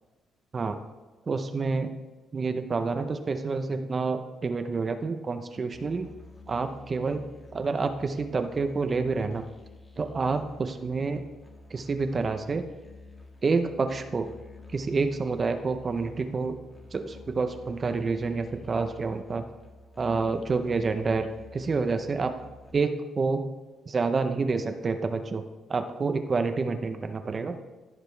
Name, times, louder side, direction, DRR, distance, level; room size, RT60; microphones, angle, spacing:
voice 1, 1.3-1.9 2.3-6.1 6.5-7.2 7.5-9.4 10.0-11.2 11.7-12.7 13.4-14.3 14.7-16.6 16.9-19.4 20.0-22.3 22.7-23.5 23.9-25.4 25.7-27.6, right 4 dB, 35° right, 7 dB, 0.7 m, -28 dB
Musical instrument, 5.7-22.7, left 2 dB, 25° left, 1.7 m, -50 dB
15.0 x 5.1 x 3.3 m, 1.2 s
cardioid pair, 90°, 0 cm